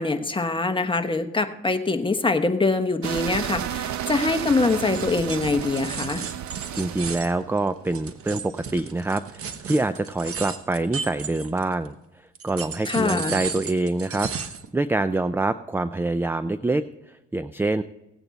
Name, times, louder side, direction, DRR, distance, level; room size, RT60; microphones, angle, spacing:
voice 1, 0.0-6.2 12.8-13.3, left 3 dB, 15° left, 7 dB, 1.1 m, -24 dB
sound 1, 3.0-9.8, right 10 dB, 70° right, 0.8 m, -32 dB
sound 2, 4.4-11.9 12.4-14.7, right 6 dB, 50° right, 1.2 m, -35 dB
voice 2, 6.7-11.9 12.4-14.3 14.7-16.8 17.3-17.8, right 2 dB, 10° right, 13 dB, 0.4 m, -25 dB
17.5 x 8.9 x 4.1 m, 0.91 s
cardioid pair, 90°, 30 cm